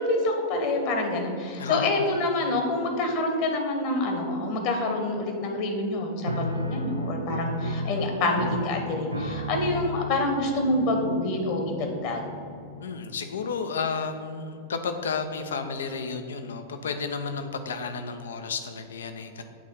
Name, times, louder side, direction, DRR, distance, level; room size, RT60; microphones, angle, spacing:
voice 1, 0.0-12.2, left 2 dB, 45° left, 3 dB, 1.3 m, -27 dB
voice 2, 1.6-2.0 12.8-19.4, left 5 dB, 65° left, 7 dB, 0.6 m, -32 dB
Piano, 6.3-13.0, equal, 85° right, 0.6 m, -34 dB
8.6 x 4.1 x 5.5 m, 2.4 s
figure-of-eight pair, 90°, 0 cm